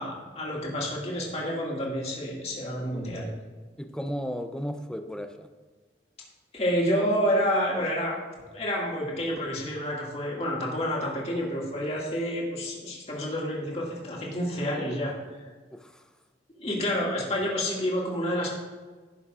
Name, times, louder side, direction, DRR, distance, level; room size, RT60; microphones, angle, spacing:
voice 1, 0.0-3.3 6.5-8.1 8.5-15.1 16.6-18.5, equal, 35° left, -3 dB, 2.1 m, -29 dB
voice 2, 3.8-5.5 15.7-16.0, equal, 5° left, 6 dB, 0.5 m, -34 dB
15.0 x 7.0 x 2.5 m, 1.4 s
head